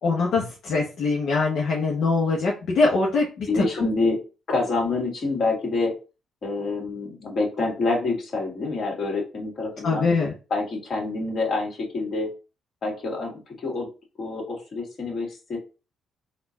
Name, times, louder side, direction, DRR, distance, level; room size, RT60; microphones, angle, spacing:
voice 1, 0.0-3.9 9.8-10.3, left 3 dB, 70° left, -2 dB, 0.9 m, -23 dB
voice 2, 3.5-4.2 4.5-5.9 6.4-10.1 10.5-12.3 12.8-13.9 14.2-15.6, left 3 dB, 55° left, 0 dB, 2.0 m, -27 dB
4.2 x 2.4 x 3.9 m, 0.32 s
cardioid pair, 90°, 0 cm